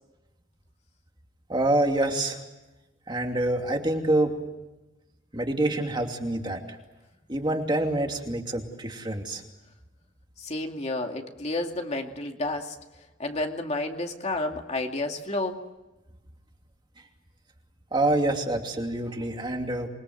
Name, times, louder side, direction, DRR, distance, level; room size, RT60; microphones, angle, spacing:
voice 1, 1.5-2.4 3.1-4.4 5.3-6.6 7.3-9.4 17.9-19.9, right 1 dB, 25° right, 3 dB, 2.8 m, -26 dB
voice 2, 10.4-12.8 13.2-15.6, left 2 dB, 35° left, 3 dB, 2.4 m, -30 dB
27.5 x 22.5 x 8.0 m, 1.0 s
head